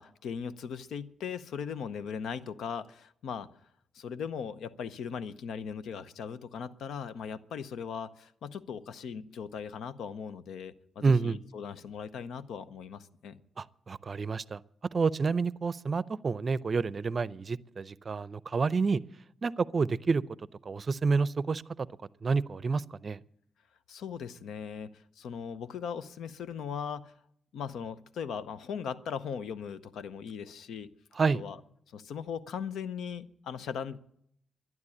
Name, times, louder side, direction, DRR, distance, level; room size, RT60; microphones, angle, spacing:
voice 1, 0.0-3.5 3.9-13.4 23.9-27.1 27.5-30.9 31.3-31.6 31.9-34.0, left 7 dB, 75° left, 0.7 m, -39 dB
voice 2, 11.0-11.4 13.6-14.6 14.9-19.0 19.4-21.9 22.2-23.2 31.1-31.4, right 4 dB, 50° right, 0.5 m, -29 dB
12.0 x 11.0 x 8.6 m
hypercardioid pair, 40°, 0 cm